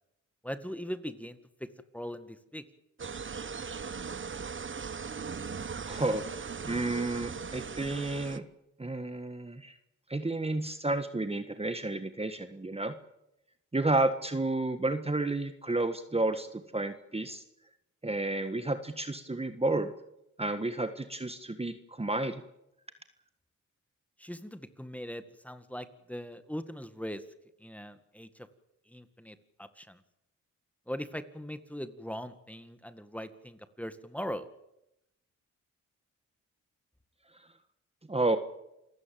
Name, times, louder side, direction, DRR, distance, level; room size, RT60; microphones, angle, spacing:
voice 1, 0.4-2.6 24.2-27.2 27.6-28.5 28.9-30.0 30.9-34.5, equal, 5° left, 11 dB, 1.9 m, -40 dB
sound 1, 3.0-8.4, right 5 dB, 40° right, 1.2 m, -39 dB
voice 2, 5.9-8.4 8.8-9.7 10.1-13.0 13.7-17.4 18.0-19.9 20.4-22.4 38.1-38.4, right 2 dB, 20° right, 9 dB, 1.5 m, -31 dB
28.5 x 16.0 x 7.8 m, 0.86 s
cardioid pair, 60°, 31 cm